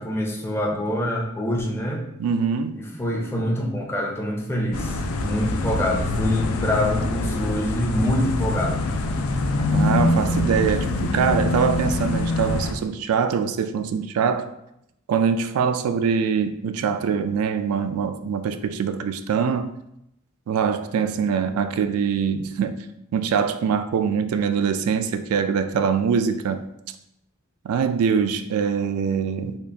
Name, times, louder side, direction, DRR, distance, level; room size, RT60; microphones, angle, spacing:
voice 1, 0.0-2.1 2.8-9.0, equal, 10° left, 0.5 m, -26 dB
voice 2, 2.2-2.8 9.7-14.5 15.1-19.7 20.5-22.8 23.1-26.7 27.6-29.6, right 6 dB, 80° right, 0.3 m, -23 dB
sound 1, 4.7-12.7, left 2 dB, 75° left, 0.4 m, -24 dB
3.8 x 2.4 x 3.3 m
head